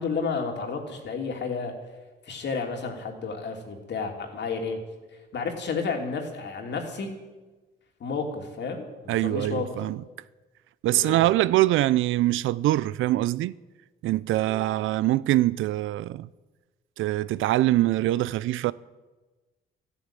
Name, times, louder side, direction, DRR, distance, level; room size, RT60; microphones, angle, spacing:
voice 1, 0.0-1.7 2.3-4.8 5.3-7.1 8.0-9.7 10.9-11.2, left 5 dB, 60° left, 3.1 m, -31 dB
voice 2, 9.1-10.0 10.8-13.5 14.0-16.3 17.0-18.7, right 15 dB, 80° right, 0.5 m, -23 dB
14.0 x 11.5 x 9.0 m
cardioid pair, 90°, 20 cm